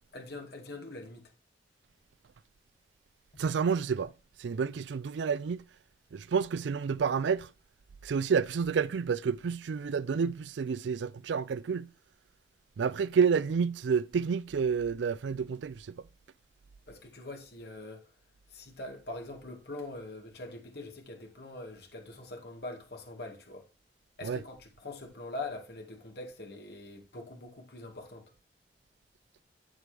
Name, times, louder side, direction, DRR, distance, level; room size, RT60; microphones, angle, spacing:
voice 1, 0.1-1.3 16.9-18.1 18.5-23.7 24.2-28.3, left 2 dB, 60° left, 2.1 m, -43 dB
voice 2, 3.4-4.1 4.4-5.6 6.1-7.5 8.0-11.9 12.8-16.0 24.2-24.4, right 6 dB, 80° right, 0.4 m, -29 dB
8.3 x 7.4 x 3.4 m
head